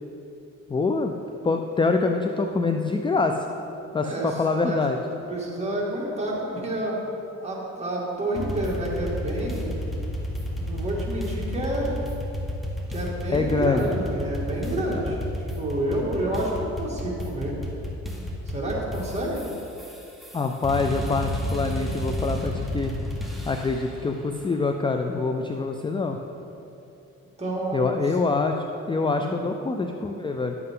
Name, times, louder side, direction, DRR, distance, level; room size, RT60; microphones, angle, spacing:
voice 1, 0.7-1.1 1.4-3.4 3.9-5.0 13.3-13.9 20.3-22.9 23.5-26.2 27.7-28.6 28.9-30.6, left 3 dB, 15° left, 5 dB, 0.4 m, -25 dB
voice 2, 4.0-4.8 5.2-7.0 7.4-9.9 10.5-11.9 12.9-15.2 15.6-17.6 18.5-19.4 27.4-28.0 29.1-29.5, right 1 dB, 20° right, -4 dB, 2.3 m, -29 dB
sound 1, 8.3-23.9, left 1 dB, ahead, 1.4 m, -31 dB
11.0 x 7.7 x 3.8 m, 2.8 s
cardioid pair, 90°, 30 cm